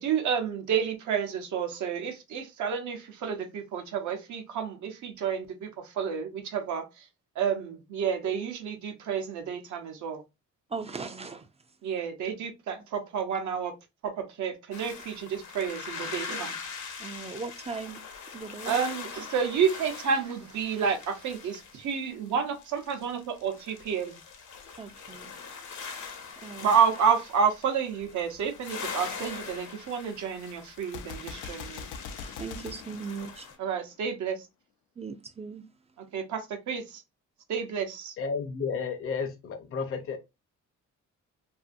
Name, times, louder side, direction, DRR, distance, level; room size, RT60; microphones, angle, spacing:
voice 1, 0.0-7.1 7.3-10.2 11.8-13.8 14.0-16.6 18.7-24.2 26.6-31.9 33.6-34.5 36.1-37.0 37.5-38.2, right 7 dB, 70° right, 0.8 m, -30 dB
voice 2, 10.7-11.8 17.0-18.0 18.3-18.8 24.8-26.8 32.4-33.6 35.0-35.6 36.0-36.1, right 5 dB, 20° right, 0.4 m, -40 dB
sound 1, 14.7-33.5, left 5 dB, 70° left, 0.8 m, -42 dB
Gunshot gunfire, 30.8-33.9, left 5 dB, 90° left, 0.5 m, -42 dB
voice 3, 38.2-40.2, left 5 dB, 45° left, 0.6 m, -32 dB
2.6 x 2.5 x 2.5 m
cardioid pair, 90°, 30 cm